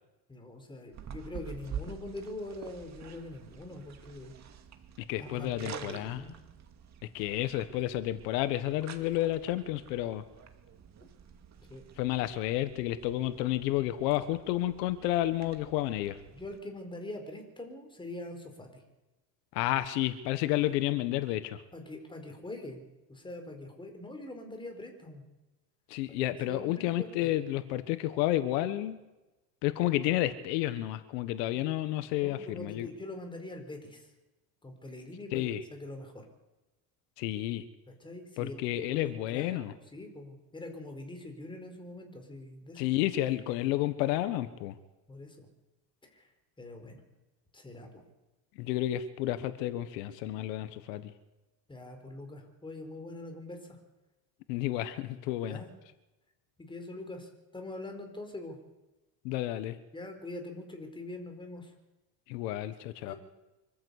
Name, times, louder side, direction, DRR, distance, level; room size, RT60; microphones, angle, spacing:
voice 1, 0.3-4.3 5.2-6.3 11.7-11.8 16.3-18.8 21.7-22.8 23.1-25.2 26.2-27.4 32.2-34.1 34.6-36.3 37.9-42.9 45.1-45.5 46.1-46.3 46.6-47.0 47.5-48.0 51.7-53.8 55.5-55.7 56.6-58.6 59.9-61.7 63.1-63.2, left 2 dB, 10° left, 4 dB, 4.4 m, -43 dB
sound 1, 0.9-16.6, right 7 dB, 35° right, 2.4 m, -48 dB
voice 2, 5.1-6.2 7.1-10.2 12.0-16.2 19.5-21.6 25.9-29.0 29.6-32.9 35.3-35.6 37.2-37.6 38.4-39.7 42.8-44.8 48.6-51.1 54.5-55.6 59.2-59.8 62.3-63.1, left 14 dB, 80° left, 12 dB, 1.5 m, -31 dB
25.0 x 14.5 x 8.3 m, 1.0 s
supercardioid pair, 135°, 48 cm